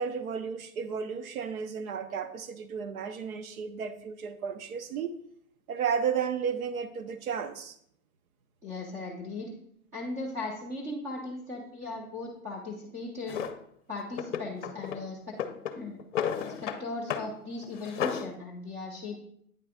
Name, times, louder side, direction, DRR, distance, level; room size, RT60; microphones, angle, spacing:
voice 1, 0.0-5.2 5.7-7.8, right 6 dB, 65° right, 11 dB, 0.8 m, -33 dB
voice 2, 8.6-9.5 9.9-13.4 13.9-15.4 15.7-16.0 16.4-19.2, left 2 dB, 10° right, -3 dB, 0.5 m, -38 dB
Drawer open or close, 13.3-13.6 14.1-15.0 15.3-16.8 17.1-17.3 17.6-18.3, left 8 dB, 50° left, 0.6 m, -33 dB
9.2 x 3.2 x 4.9 m, 0.69 s
hypercardioid pair, 170°, 46 cm